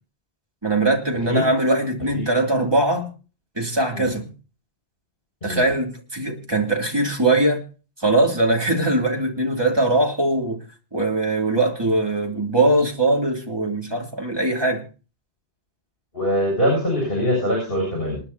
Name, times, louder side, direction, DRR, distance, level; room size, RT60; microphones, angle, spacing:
voice 1, 0.6-3.1 3.5-4.3 5.4-7.6 8.0-10.6 10.9-14.8, right 2 dB, 25° right, 1 dB, 2.9 m, -21 dB
voice 2, 16.1-18.2, equal, 60° left, -1 dB, 7.6 m, -23 dB
28.0 x 9.6 x 2.9 m, 0.36 s
omnidirectional pair, 1.1 m